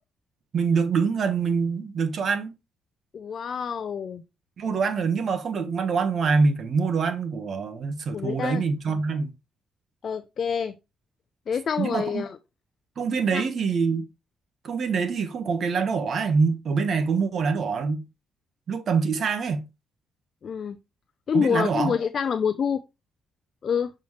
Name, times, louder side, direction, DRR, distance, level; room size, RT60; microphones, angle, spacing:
voice 1, 0.5-2.5 4.6-9.3 11.8-12.2 13.0-14.1 14.6-18.0 18.7-19.6 21.3-22.0, right 5 dB, 55° right, 1.2 m, -25 dB
voice 2, 3.1-4.2 8.1-8.6 10.0-10.7 11.5-12.4 13.3-13.4 20.4-20.8 21.3-22.8 23.6-23.9, left 7 dB, 50° left, 0.5 m, -27 dB
7.0 x 4.4 x 3.1 m
cardioid pair, 90°, 0 cm